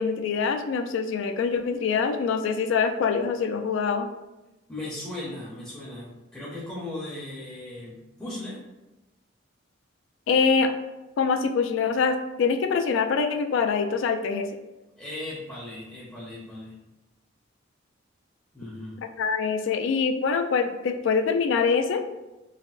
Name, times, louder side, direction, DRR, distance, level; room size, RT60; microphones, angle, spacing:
voice 1, 0.0-4.1 10.3-10.7 11.2-14.5 19.2-22.0, left 5 dB, 65° left, 7 dB, 0.3 m, -24 dB
voice 2, 4.7-8.6 15.0-16.7 18.5-19.0, left 1 dB, 10° left, -8 dB, 0.6 m, -37 dB
4.0 x 2.0 x 2.4 m, 1.0 s
head